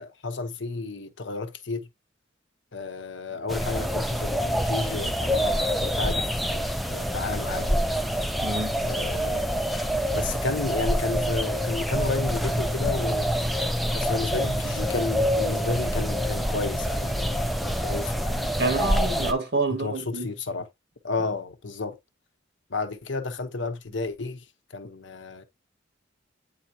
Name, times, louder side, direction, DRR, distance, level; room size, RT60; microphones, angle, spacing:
voice 1, 0.0-1.9 2.7-6.2 6.5-7.8 8.8-9.6 10.1-13.3 13.9-18.6 19.7-20.7 21.0-22.0 22.7-24.4 24.7-25.4, left 3 dB, 70° left, 1.0 m, -32 dB
sound 1, 3.5-19.3, equal, ahead, 0.5 m, -26 dB
voice 2, 8.4-8.8 18.6-20.3, right 3 dB, 55° right, 1.9 m, -27 dB
8.5 x 4.0 x 2.8 m
head